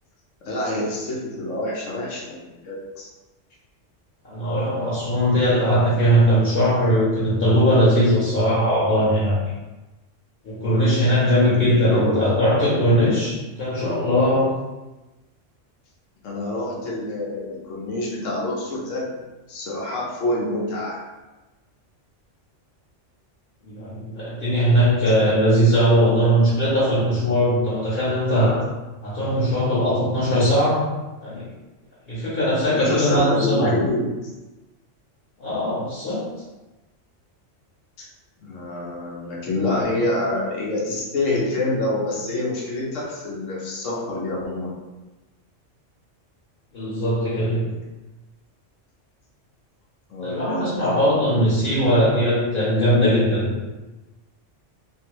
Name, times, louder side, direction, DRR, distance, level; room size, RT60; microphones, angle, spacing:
voice 1, 0.4-2.4 2.6-3.1 11.6-12.4 16.2-19.2 19.5-21.0 32.7-34.2 38.0-38.1 38.4-44.7 50.1-50.8, left 1 dB, 85° left, -4 dB, 1.1 m, -26 dB
voice 2, 4.2-9.4 10.4-14.5 23.7-28.7 29.0-30.8 31.2-31.5 32.1-33.8 35.4-36.2 46.7-47.7 50.2-53.5, equal, 55° left, -8 dB, 1.0 m, -20 dB
2.7 x 2.6 x 2.9 m, 1.1 s
omnidirectional pair, 1.3 m